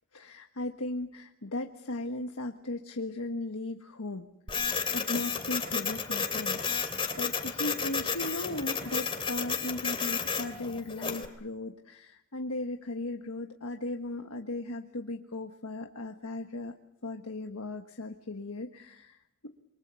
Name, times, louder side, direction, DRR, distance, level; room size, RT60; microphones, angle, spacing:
voice 1, 0.1-6.6 7.2-16.8 17.0-19.2, left 2 dB, 90° left, 4 dB, 1.5 m, -37 dB
Printer, 4.5-11.3, left 5 dB, 25° left, 2.8 m, -32 dB
28.5 x 24.0 x 7.0 m, 0.80 s
head